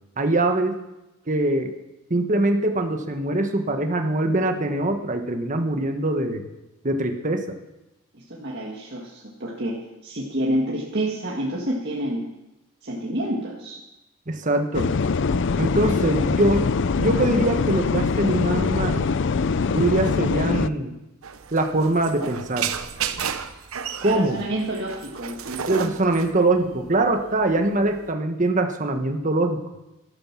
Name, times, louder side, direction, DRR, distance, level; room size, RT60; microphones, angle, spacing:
voice 1, 0.2-0.8 1.3-1.7 2.1-6.5 6.8-7.6 14.3-14.9 15.6-16.7 17.0-19.1 19.7-21.0 21.5-22.7 24.0-24.4 25.7-29.6, right 2 dB, 35° right, 5 dB, 1.3 m, -23 dB
voice 2, 8.1-12.3 12.8-13.8 15.9-16.0 24.0-25.7, right 1 dB, 55° right, -3 dB, 1.8 m, -29 dB
sound 1, 14.7-20.7, left 4 dB, 60° left, 0.5 m, -23 dB
sound 2, 21.2-28.1, right 7 dB, 90° right, 0.9 m, -33 dB
13.5 x 13.0 x 6.0 m, 0.97 s
head